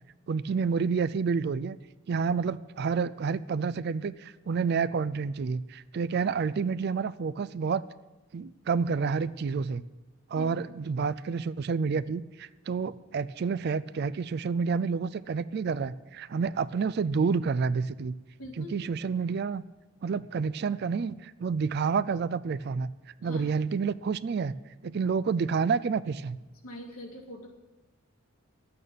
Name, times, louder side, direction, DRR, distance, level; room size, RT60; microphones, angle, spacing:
voice 1, 0.3-1.8 2.1-7.8 8.3-9.8 10.3-18.1 18.6-19.6 20.0-22.9 23.2-24.5 24.8-26.4, right 5 dB, 50° right, 16 dB, 0.3 m, -29 dB
voice 2, 18.4-18.7 23.2-23.5 26.6-27.5, left 1 dB, 85° left, 0 dB, 2.1 m, -43 dB
10.5 x 8.8 x 6.8 m, 1.1 s
head